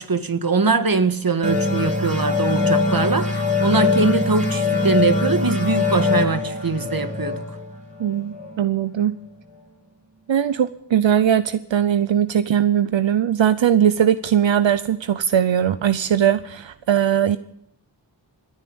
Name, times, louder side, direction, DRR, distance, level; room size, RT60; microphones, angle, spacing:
voice 1, 0.0-7.6, right 4 dB, 50° right, 1.6 m, -22 dB
sound 1, 1.4-8.7, left 3 dB, 15° right, 3.2 m, -22 dB
voice 2, 8.0-9.1 10.3-17.4, right 9 dB, 85° right, 0.7 m, -19 dB
26.0 x 9.6 x 5.3 m
wide cardioid pair, 60°, 44 cm